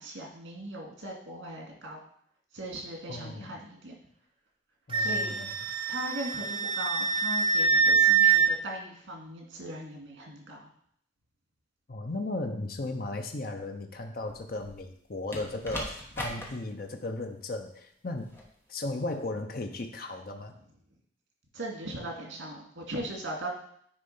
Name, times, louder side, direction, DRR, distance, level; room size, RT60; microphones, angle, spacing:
voice 1, 0.0-2.0 2.5-4.0 5.0-5.6 5.9-10.7 21.5-23.5, right 1 dB, 90° right, 0 dB, 2.2 m, -39 dB
voice 2, 3.1-3.6 4.9-5.5 11.9-18.3 18.7-20.5, left 2 dB, 50° left, 4 dB, 0.7 m, -36 dB
Wind instrument woodwind instrument, 4.9-8.5, right 6 dB, 25° right, 0.8 m, -24 dB
sound 1, 14.3-14.9 15.3-16.5 18.2-18.5, left 1 dB, 10° left, 1.2 m, -39 dB
9.8 x 3.3 x 5.5 m, 0.65 s
head